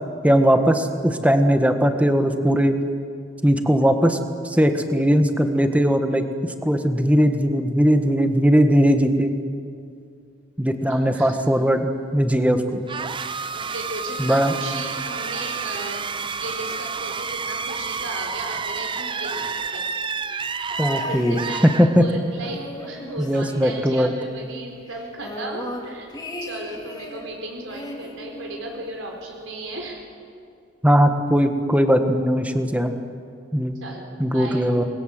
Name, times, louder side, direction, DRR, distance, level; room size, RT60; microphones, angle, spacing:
voice 1, 0.2-2.7 3.4-4.2 4.4-9.3 10.6-11.8 12.1-12.8 14.2-14.5 20.8-21.4 21.8-22.0 23.2-24.1 30.8-32.9 33.5-33.8 34.2-34.8, equal, 5° right, 6 dB, 1.5 m, -19 dB
voice 2, 10.9-11.4 13.5-16.1 16.4-19.8 20.9-26.1 26.4-30.0 33.8-34.7, right 2 dB, 90° right, 1 dB, 4.3 m, -35 dB
sound 1, 12.9-22.4, right 5 dB, 25° right, 0.6 m, -30 dB
sound 2, 20.7-22.0 22.3-24.2 24.5-24.6 24.9-27.3 27.7-29.0 29.8-29.9, left 1 dB, 20° left, 3.1 m, -36 dB
28.0 x 21.0 x 7.9 m, 2.4 s
head